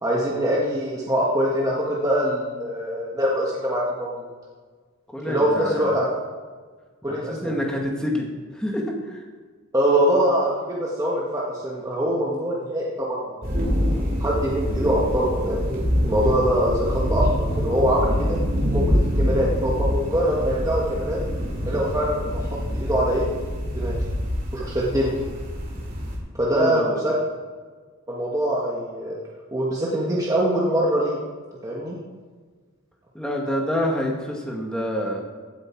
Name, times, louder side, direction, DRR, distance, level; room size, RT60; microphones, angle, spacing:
voice 1, 0.0-4.3 5.3-6.1 7.0-7.6 9.7-13.7 14.2-18.4 18.7-21.2 21.6-22.4 22.7-23.3 23.7-24.0 24.5-25.1 26.3-27.1 28.1-29.2 29.5-31.2 31.6-32.0, equal, 15° right, -4 dB, 1.5 m, -23 dB
voice 2, 5.1-5.9 7.1-8.3 8.5-9.2 26.6-27.0 33.1-35.2, equal, 5° left, 0 dB, 1.6 m, -27 dB
sound 1, 13.4-26.2, equal, 40° right, 2.6 m, -25 dB
16.0 x 7.8 x 4.5 m, 1.5 s
head